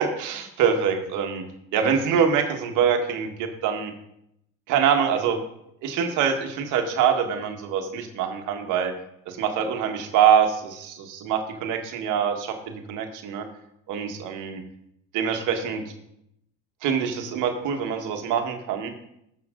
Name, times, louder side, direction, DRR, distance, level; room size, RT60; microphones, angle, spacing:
voice 1, 0.0-1.4 1.7-3.9 4.7-5.4 5.8-8.9 9.3-13.4 13.9-14.6 15.1-15.8 16.8-18.9, right 7 dB, 70° right, 4 dB, 1.7 m, -24 dB
13.0 x 6.8 x 3.9 m, 0.77 s
supercardioid pair, 80°, 31 cm